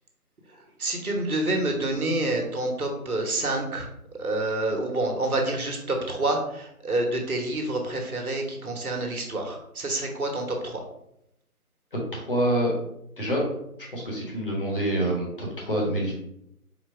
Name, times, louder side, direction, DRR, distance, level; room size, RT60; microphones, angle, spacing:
voice 1, 0.8-3.9 4.2-10.8, right 2 dB, 70° right, 2 dB, 1.3 m, -28 dB
voice 2, 11.9-12.7 13.2-13.4 13.9-16.2, right 1 dB, 35° left, -3 dB, 1.2 m, -26 dB
4.4 x 2.3 x 4.6 m, 0.78 s
figure-of-eight pair, 170°, 45 cm